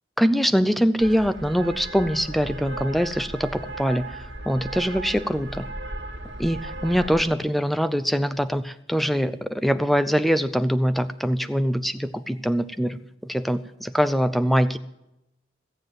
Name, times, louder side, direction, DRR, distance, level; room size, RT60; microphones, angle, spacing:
voice 1, 0.2-5.7 6.4-14.8, equal, ahead, 12 dB, 0.6 m, -23 dB
sound 1, 1.0-7.2, right 2 dB, 75° right, 2.3 m, -36 dB
17.5 x 7.8 x 9.3 m, 0.87 s
head